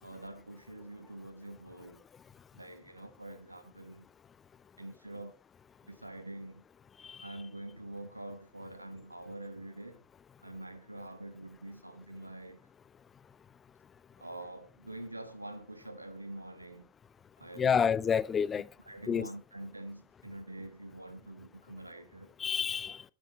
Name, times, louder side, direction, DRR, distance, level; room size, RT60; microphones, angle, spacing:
voice 1, 0.0-2.0 2.5-4.1 4.8-5.4 5.8-6.6 7.2-10.0 10.4-12.7 14.2-16.9 17.4-17.9 18.8-22.3, right 1 dB, 85° right, 1.5 m, -45 dB
voice 2, 17.6-18.7 19.1-19.3 22.4-23.0, left 7 dB, 20° left, 0.5 m, -28 dB
13.0 x 9.8 x 4.1 m
figure-of-eight pair, 90°, 0 cm